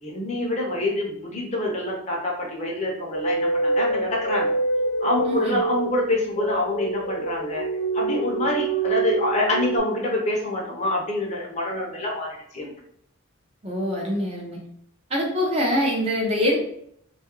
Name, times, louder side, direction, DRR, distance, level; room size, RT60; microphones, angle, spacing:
voice 1, 0.0-4.5 5.0-7.6 7.9-12.7, left 2 dB, 30° left, -2 dB, 0.6 m, -26 dB
sound 1, 3.1-9.8, right 3 dB, 85° left, 0.4 m, -26 dB
voice 2, 5.2-5.6 13.6-14.6 15.1-16.6, left 1 dB, 30° right, -1 dB, 0.5 m, -24 dB
2.7 x 2.3 x 2.9 m, 0.70 s
head